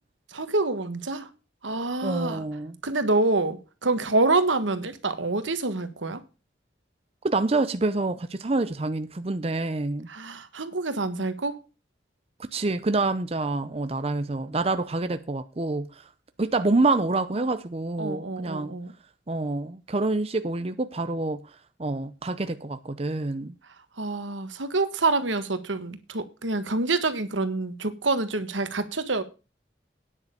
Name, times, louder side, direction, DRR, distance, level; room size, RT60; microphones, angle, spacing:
voice 1, 0.3-1.3 1.6-2.4 2.8-6.2 10.1-11.6 18.0-18.9 24.0-29.2, right 3 dB, 85° right, 1.5 m, -27 dB
voice 2, 2.0-2.8 7.2-10.1 12.5-15.9 16.4-18.7 19.3-21.4 21.8-23.5, right 2 dB, 30° right, 0.6 m, -27 dB
9.8 x 6.7 x 6.9 m
head